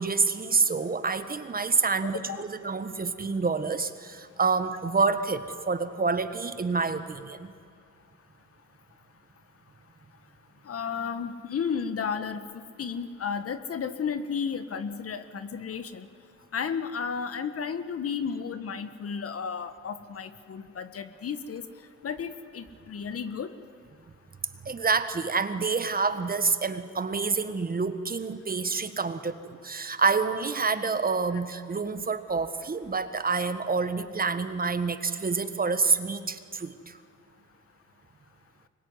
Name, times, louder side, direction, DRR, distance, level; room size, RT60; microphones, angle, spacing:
voice 1, 0.0-7.5 24.6-37.0, right 4 dB, 30° right, 11 dB, 1.5 m, -27 dB
voice 2, 10.7-16.1 16.5-21.6 22.0-23.5, left 6 dB, 50° left, 11 dB, 1.5 m, -33 dB
24.5 x 22.0 x 9.7 m, 2.2 s
cardioid pair, 90°, 30 cm